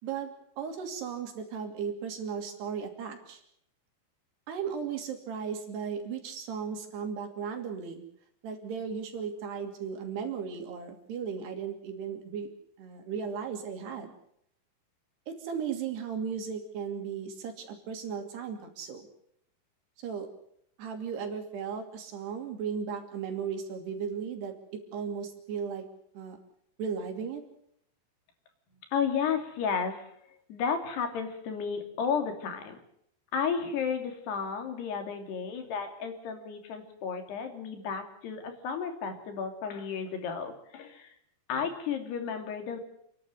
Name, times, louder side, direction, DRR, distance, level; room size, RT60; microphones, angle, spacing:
voice 1, 0.0-3.4 4.5-8.0 8.4-12.5 12.8-14.1 15.3-19.1 20.0-20.3 20.8-24.5 24.9-25.9 26.1-26.4 26.8-27.4, right 6 dB, 90° right, 5 dB, 4.8 m, -36 dB
voice 2, 28.9-30.1 30.5-32.8 33.3-41.1 41.5-42.8, left 6 dB, 85° left, 5 dB, 4.9 m, -33 dB
28.5 x 11.5 x 9.7 m, 0.71 s
omnidirectional pair, 4.6 m